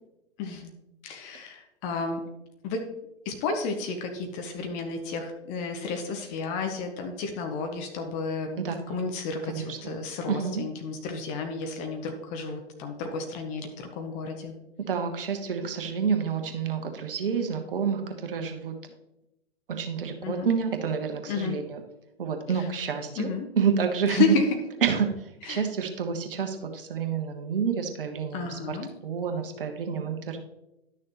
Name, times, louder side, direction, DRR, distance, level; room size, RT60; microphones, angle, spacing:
voice 1, 0.4-0.7 1.0-2.2 2.6-2.9 3.2-8.6 8.9-14.5 20.2-20.5 21.3-21.6 23.2-23.4 24.1-24.5 25.5-25.6 28.3-28.9, left 4 dB, 20° left, 4 dB, 0.9 m, -31 dB
voice 2, 9.5-9.9 10.3-10.6 14.8-18.7 19.7-21.8 22.2-24.3 24.8-28.8 29.0-30.4, right 6 dB, 55° right, 5 dB, 1.2 m, -28 dB
11.0 x 6.4 x 3.0 m, 0.93 s
figure-of-eight pair, 120°, 33 cm